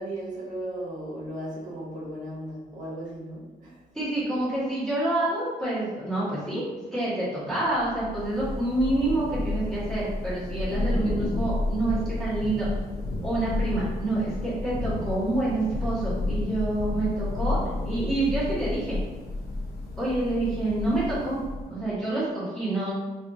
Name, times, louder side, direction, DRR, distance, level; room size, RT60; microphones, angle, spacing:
voice 1, 0.0-3.8 4.3-4.5, right 1 dB, 55° right, -5 dB, 0.8 m, -36 dB
voice 2, 3.9-6.6 6.9-12.7 13.2-19.0 20.0-22.9, right 2 dB, 5° left, -11 dB, 1.2 m, -27 dB
Thunder / Rain, 7.8-21.9, left 2 dB, 75° left, 0.7 m, -31 dB
2.7 x 2.5 x 3.5 m, 1.2 s
wide cardioid pair, 175°, 16 cm